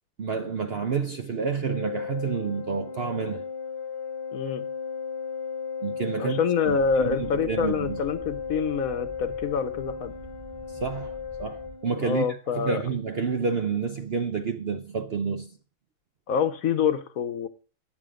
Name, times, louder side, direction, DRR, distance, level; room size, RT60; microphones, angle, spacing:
voice 1, 0.2-3.5 5.8-6.4 6.7-8.0 10.8-12.3 12.5-15.5, right 5 dB, 55° right, 0.7 m, -29 dB
Organ, 1.6-12.4, left 6 dB, 90° left, 1.7 m, -35 dB
voice 2, 4.3-4.7 6.2-10.1 12.0-12.8 16.3-17.5, left 6 dB, 65° left, 1.1 m, -26 dB
sound 1, 6.6-11.8, left 3 dB, 20° left, 0.8 m, -46 dB
10.5 x 7.5 x 5.0 m
omnidirectional pair, 1.7 m